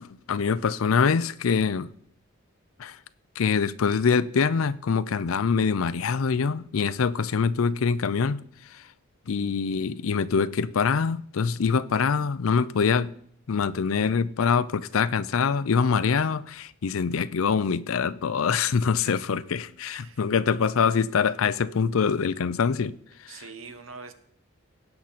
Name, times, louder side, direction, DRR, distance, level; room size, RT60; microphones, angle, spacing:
voice 1, 0.0-1.9 2.8-3.0 3.4-8.4 8.7-8.8 9.3-13.1 13.5-23.0 23.2-23.4, left 6 dB, 85° left, 0.5 m, -24 dB
voice 2, 19.0-19.4 19.9-20.2 23.3-24.1, right 4 dB, 75° right, 1.0 m, -44 dB
16.5 x 5.9 x 4.1 m
head